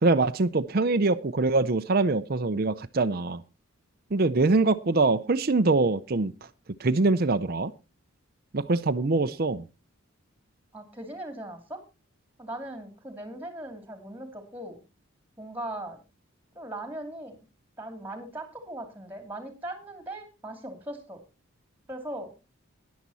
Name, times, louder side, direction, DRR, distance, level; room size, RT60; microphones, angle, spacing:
voice 1, 0.0-3.4 4.1-6.3 6.8-7.7 8.5-9.6, right 3 dB, 45° right, 0.6 m, -24 dB
voice 2, 10.7-11.8 12.4-14.8 15.4-16.0 16.5-17.4 17.8-21.2 21.9-22.3, right 1 dB, 10° right, 2.7 m, -39 dB
13.0 x 10.5 x 4.1 m
head